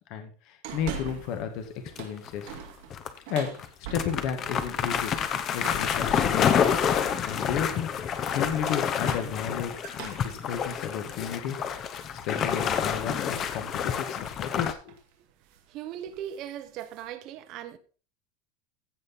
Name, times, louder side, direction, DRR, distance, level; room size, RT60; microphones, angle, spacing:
voice 1, 0.1-1.6 2.0-2.5 3.3-3.5 3.9-5.1 5.5-6.7 7.2-11.6 12.3-14.9, left 8 dB, 45° left, 2.0 m, -33 dB
sound 1, 0.6-1.5 1.8-4.5 5.6-6.0 7.0-7.5 8.8-12.2 12.7-12.8 14.3-14.5 14.9-15.1 15.4-15.7 16.0-17.1, right 7 dB, 55° right, 2.4 m, -43 dB
sound 2, 1.9-2.6 2.9-3.1 3.6-3.7 3.9-14.7, left 8 dB, 25° left, 0.8 m, -28 dB
voice 2, 15.7-17.8, right 10 dB, 40° right, 1.1 m, -38 dB
15.5 x 5.2 x 4.2 m
supercardioid pair, 165°, 0 cm